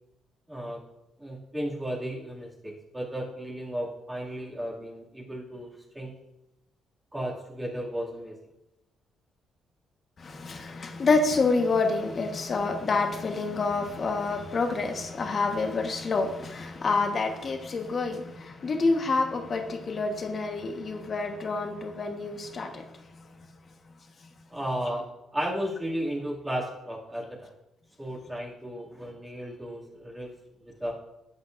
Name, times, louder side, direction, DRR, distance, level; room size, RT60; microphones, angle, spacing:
voice 1, 0.5-0.8 1.2-6.1 7.1-8.4 24.5-25.1 25.3-27.5 28.0-30.3 30.6-30.9, equal, 15° right, -6 dB, 2.5 m, -34 dB
voice 2, 10.2-22.8, left 3 dB, 45° left, 4 dB, 1.4 m, -28 dB
13.0 x 8.6 x 2.6 m, 0.93 s
cardioid pair, 90°, 0 cm